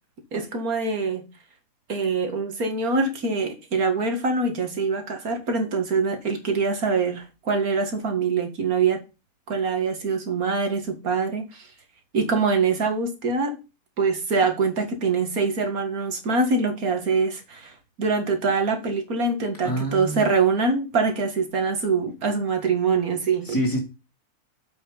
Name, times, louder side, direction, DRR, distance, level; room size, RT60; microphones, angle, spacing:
voice 1, 0.3-1.3 1.9-9.0 9.5-11.7 12.1-13.6 14.0-23.6, right 4 dB, 75° right, 2.2 m, -24 dB
voice 2, 19.6-20.3 23.5-23.8, right 1 dB, 15° left, 2.5 m, -26 dB
7.8 x 6.0 x 3.9 m
omnidirectional pair, 1.5 m